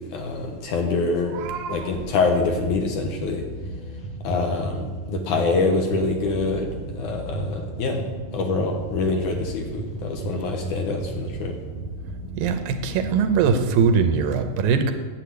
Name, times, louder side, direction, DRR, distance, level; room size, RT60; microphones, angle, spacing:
voice 1, 0.1-1.3 1.7-3.4 4.2-8.0 8.3-11.5, left 3 dB, 65° left, 3 dB, 2.3 m, -25 dB
voice 2, 1.3-1.9 12.4-14.9, right 6 dB, 75° right, 8 dB, 2.4 m, -22 dB
sound 1, 2.1-13.9, right 2 dB, 35° left, 1.6 m, -34 dB
10.5 x 8.2 x 8.1 m, 1.4 s
omnidirectional pair, 4.3 m